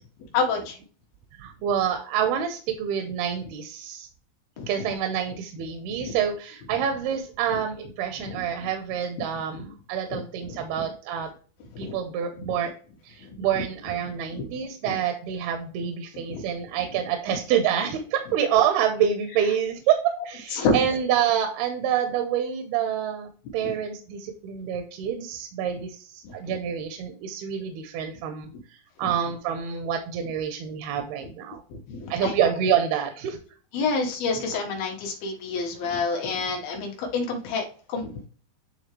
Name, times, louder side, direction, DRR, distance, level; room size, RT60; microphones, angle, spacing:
voice 1, 0.3-0.8 4.6-4.7 6.0-6.2 8.3-8.7 9.5-9.6 10.1-10.2 10.5-10.6 11.7-12.0 12.4-12.5 13.2-13.4 14.3-14.9 16.3-16.4 20.5-20.8 23.6-23.7 26.2-26.5 29.0-29.1 31.7-32.5 33.7-38.3, left 4 dB, 70° left, 1 dB, 3.0 m, -29 dB
voice 2, 1.4-4.1 4.7-11.3 11.8-12.7 13.0-20.0 20.2-31.6 32.1-33.4, right 8 dB, 80° right, 5 dB, 2.6 m, -27 dB
10.0 x 3.5 x 3.0 m, 0.40 s
omnidirectional pair, 4.5 m